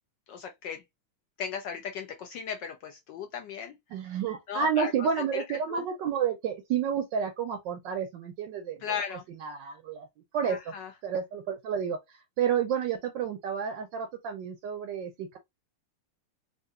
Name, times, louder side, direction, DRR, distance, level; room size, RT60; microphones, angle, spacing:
voice 1, 0.3-0.8 1.4-3.8 4.5-5.8 8.8-9.2 10.4-10.9, left 7 dB, 75° left, 1.0 m, -37 dB
voice 2, 3.9-9.0 9.4-10.1 10.3-10.7 11.0-12.0 12.4-15.4, right 7 dB, 75° right, 1.1 m, -30 dB
3.7 x 2.7 x 2.4 m
omnidirectional pair, 2.4 m